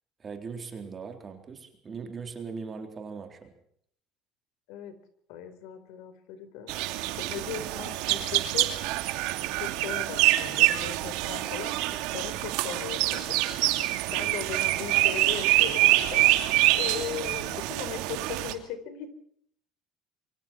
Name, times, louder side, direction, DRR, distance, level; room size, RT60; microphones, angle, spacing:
voice 1, 0.2-3.5 14.1-14.3, right 5 dB, 25° right, 4 dB, 3.8 m, -40 dB
voice 2, 5.3-6.7 7.2-8.7 9.6-13.4 14.1-16.3 16.7-19.1, left 9 dB, 80° left, 11 dB, 4.6 m, -38 dB
sound 1, 6.7-18.5, right 17 dB, 85° right, 2.7 m, -26 dB
27.0 x 24.5 x 4.6 m, 0.65 s
cardioid pair, 155°, 0 cm